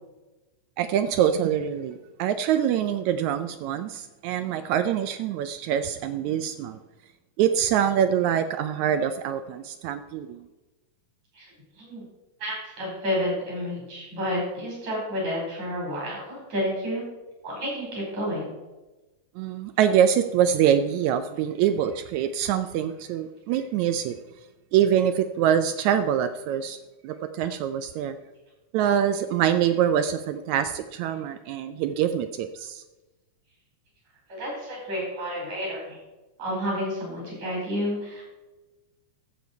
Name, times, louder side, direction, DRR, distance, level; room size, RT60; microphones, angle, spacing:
voice 1, 0.8-6.8 7.4-10.5 19.4-24.2 24.7-26.8 27.0-28.2 28.7-32.8, right 9 dB, 80° right, 10 dB, 1.8 m, -24 dB
voice 2, 11.3-12.0 12.4-17.0 17.4-18.6 34.3-36.0 36.4-38.2, equal, 60° right, -3 dB, 6.0 m, -30 dB
13.5 x 7.1 x 4.6 m, 1.1 s
omnidirectional pair, 3.6 m